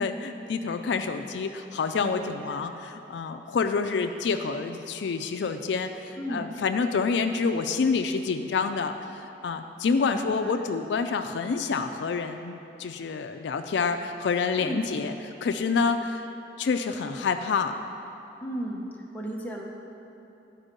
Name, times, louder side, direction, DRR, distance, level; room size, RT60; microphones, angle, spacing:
voice 1, 0.0-15.1 15.4-16.2 16.6-17.7, left 5 dB, 75° left, 7 dB, 0.4 m, -28 dB
voice 2, 6.2-6.6 10.1-10.6 14.6-14.9 18.4-18.9 19.1-19.6, right 1 dB, 10° left, -3 dB, 0.9 m, -35 dB
11.5 x 4.5 x 5.2 m, 3.0 s
head